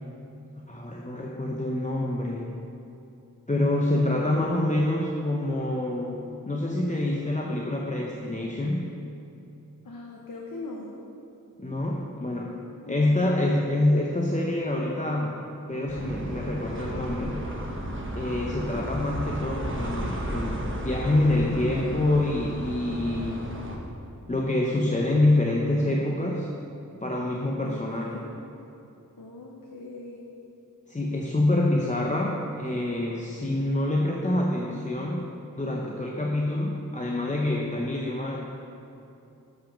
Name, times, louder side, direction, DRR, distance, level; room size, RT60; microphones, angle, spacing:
voice 1, 0.7-2.5 3.5-8.9 11.6-12.5 12.9-15.4 15.7-17.4 18.1-23.5 24.3-26.5 27.0-28.2 30.9-35.3 35.6-38.4, left 1 dB, 20° left, -2 dB, 0.7 m, -26 dB
voice 2, 9.8-10.9 12.8-13.3 27.6-28.3 29.2-30.2, left 2 dB, 90° left, -1 dB, 0.7 m, -40 dB
sound 1, 15.9-23.8, right 1 dB, 35° right, 1.0 m, -34 dB
7.4 x 5.9 x 5.1 m, 2.8 s
wide cardioid pair, 55°, 33 cm